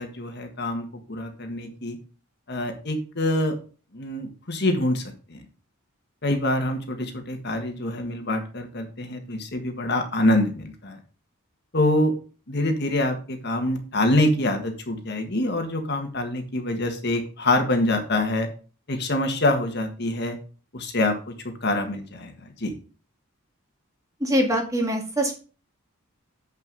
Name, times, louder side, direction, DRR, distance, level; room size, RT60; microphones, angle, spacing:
voice 1, 0.0-2.0 2.5-3.5 3.9-5.0 5.3-5.4 6.2-11.0 11.7-12.1 12.5-18.5 18.9-20.4 20.7-22.7, left 1 dB, 55° left, 5 dB, 1.6 m, -25 dB
voice 2, 24.2-25.3, equal, 15° right, 2 dB, 1.9 m, -23 dB
7.7 x 6.1 x 5.5 m, 0.37 s
head